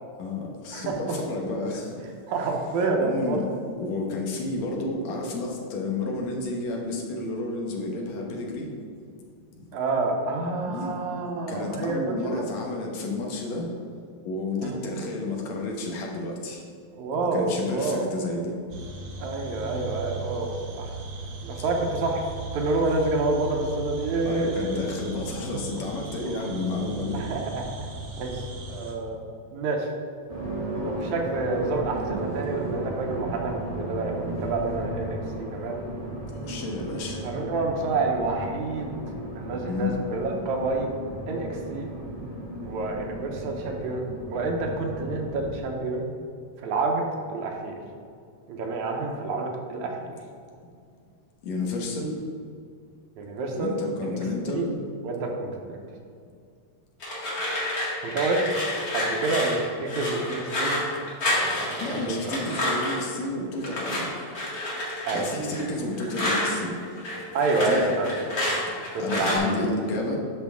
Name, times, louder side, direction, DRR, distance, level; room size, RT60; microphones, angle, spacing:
voice 1, 0.2-2.0 3.0-3.5 3.8-8.7 9.6-9.8 10.6-11.0 11.5-13.7 14.2-16.6 17.3-18.6 24.3-27.2 31.0-31.1 36.4-37.2 39.5-39.9 51.4-52.1 53.5-54.7 61.8-64.1 65.1-67.2 67.6-67.8 68.7-70.2, left 2 dB, 70° left, -1 dB, 2.3 m, -31 dB
voice 2, 0.7-1.2 2.3-3.4 9.7-12.4 14.6-15.2 16.9-18.1 19.2-21.0 21.4-22.2 22.5-24.8 26.3-26.5 27.1-27.7 28.2-29.9 30.9-35.2 35.5-35.8 37.2-39.0 39.4-40.9 41.3-41.9 42.6-46.1 46.6-47.0 47.3-47.7 48.5-50.1 53.2-53.7 54.1-54.2 54.5-54.7 55.0-55.8 58.0-58.4 58.9-60.8 61.4-62.2 65.1-65.3 67.3-68.5 68.9-69.4, right 3 dB, 80° right, 1 dB, 2.2 m, -28 dB
sound 1, 18.7-28.9, right 4 dB, 60° right, 1.3 m, -37 dB
sound 2, 30.3-45.6, right 1 dB, 20° right, 1.1 m, -35 dB
sound 3, 57.0-63.1 63.6-66.5 66.8-69.4, left 1 dB, 35° left, 1.8 m, -29 dB
10.0 x 6.1 x 3.6 m, 2.3 s
omnidirectional pair, 3.4 m